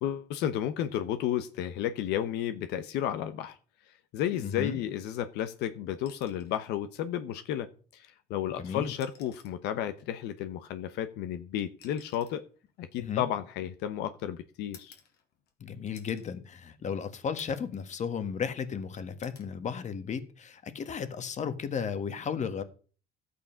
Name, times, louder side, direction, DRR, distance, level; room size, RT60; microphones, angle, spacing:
voice 1, 0.0-3.6 4.1-12.4 12.8-15.0, left 10 dB, 90° left, 10 dB, 1.0 m, -32 dB
voice 2, 4.4-4.8 8.6-8.9 13.0-13.3 15.6-22.6, left 7 dB, 45° left, 11 dB, 1.5 m, -34 dB
sound 1, 6.1-6.7 8.1-8.2 8.9-9.7 10.8-13.9 14.7-15.6 15.9-16.4 16.8-16.9 17.4-17.8 18.2-18.8 19.2-19.5 21.0-21.2, left 7 dB, 70° left, 2.5 m, -57 dB
12.5 x 8.5 x 5.7 m, 0.40 s
cardioid pair, 110°, 17 cm